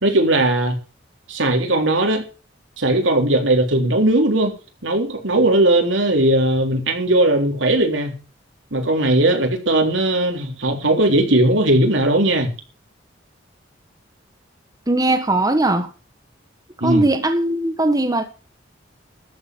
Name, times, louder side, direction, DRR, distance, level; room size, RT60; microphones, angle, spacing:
voice 1, 0.0-0.8 1.3-2.3 2.8-4.5 4.8-8.2 8.7-12.5 16.8-17.1, right 1 dB, 75° right, 4 dB, 3.5 m, -18 dB
voice 2, 14.9-15.9 16.8-18.2, right 2 dB, 20° right, 6 dB, 1.4 m, -19 dB
13.0 x 7.6 x 8.0 m, 0.34 s
head